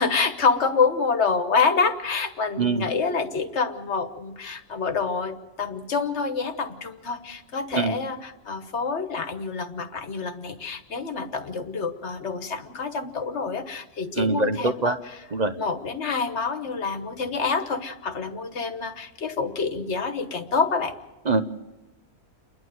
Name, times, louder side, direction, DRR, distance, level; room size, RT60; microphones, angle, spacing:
voice 1, 0.0-15.0 15.6-20.9, left 4 dB, 50° left, 8 dB, 1.6 m, -27 dB
voice 2, 14.2-15.0 15.3-15.5 21.3-21.4, right 3 dB, 40° right, 9 dB, 0.6 m, -23 dB
29.5 x 12.0 x 7.7 m, 1.1 s
omnidirectional pair, 1.6 m